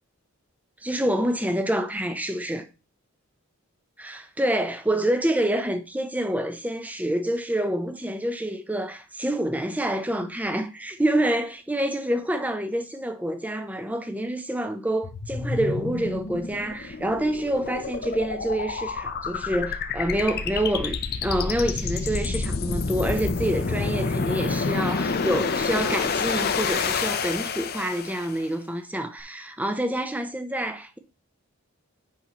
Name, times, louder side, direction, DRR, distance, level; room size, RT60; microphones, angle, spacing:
voice 1, 0.8-2.7 4.0-31.0, right 1 dB, 5° right, 0.6 m, -27 dB
sound 1, 15.0-28.4, left 4 dB, 45° left, 0.6 m, -28 dB
8.5 x 5.6 x 3.0 m
head